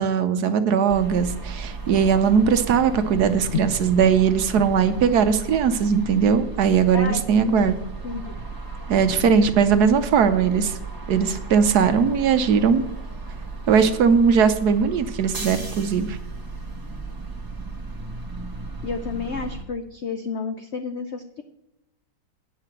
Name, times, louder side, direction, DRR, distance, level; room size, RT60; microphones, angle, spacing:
voice 1, 0.0-7.7 8.9-10.8 11.1-12.9 13.7-16.2, right 6 dB, 65° right, 10 dB, 1.2 m, -19 dB
sound 1, 0.9-19.6, right 3 dB, 15° right, 1.1 m, -35 dB
voice 2, 6.9-7.7 8.0-8.3 18.8-21.4, left 5 dB, 70° left, 7 dB, 0.6 m, -30 dB
9.4 x 5.7 x 7.7 m, 0.92 s
omnidirectional pair, 1.9 m